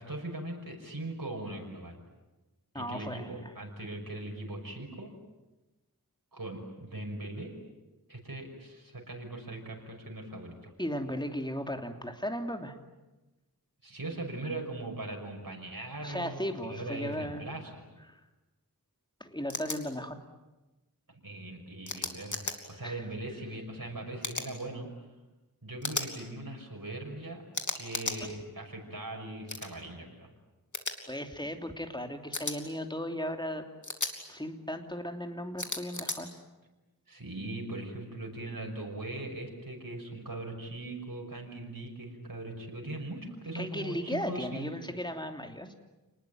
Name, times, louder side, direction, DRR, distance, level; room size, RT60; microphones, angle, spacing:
voice 1, 0.0-2.0 2.7-5.1 6.3-7.5 8.1-10.7 13.8-17.8 21.2-22.4 22.7-24.9 25.6-27.4 27.7-30.3 37.1-44.8, right 2 dB, 65° right, 0 dB, 5.9 m, -40 dB
voice 2, 2.7-3.5 10.8-12.7 16.0-17.4 18.1-18.2 19.2-20.2 22.8-23.0 31.1-33.6 34.3-36.3 43.5-45.7, equal, 10° left, 5 dB, 3.0 m, -36 dB
sound 1, 19.5-19.8 21.9-22.5 24.2-24.5 25.8-26.1 27.5-28.2 29.5-29.7 30.7-30.9 32.3-32.6 33.8-34.1 35.6-36.2, left 2 dB, 55° left, 3.2 m, -34 dB
29.0 x 20.0 x 9.4 m, 1.1 s
wide cardioid pair, 45°, 36 cm